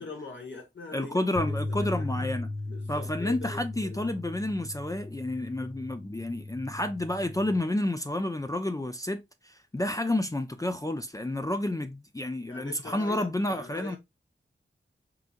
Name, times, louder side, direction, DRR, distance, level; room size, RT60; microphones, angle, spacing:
voice 1, 0.0-2.3 2.6-4.2 12.5-14.0, left 3 dB, 65° left, 1.7 m, -42 dB
voice 2, 0.9-2.5 2.9-9.2 9.4-14.0, left 1 dB, 15° left, 0.4 m, -30 dB
sound 1, 1.4-7.6, left 2 dB, 15° right, 1.0 m, -36 dB
4.5 x 3.8 x 2.4 m
wide cardioid pair, 85°, 21 cm